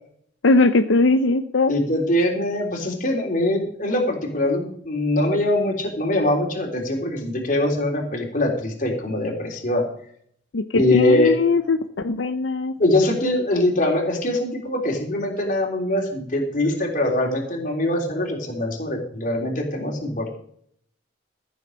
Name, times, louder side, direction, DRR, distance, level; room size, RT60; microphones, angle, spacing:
voice 1, 0.4-1.7 10.5-12.7, left 3 dB, 80° left, 8 dB, 0.7 m, -20 dB
voice 2, 1.7-9.8 10.7-11.4 12.8-20.3, left 1 dB, 45° left, 1 dB, 3.5 m, -22 dB
14.5 x 7.2 x 6.4 m, 0.64 s
head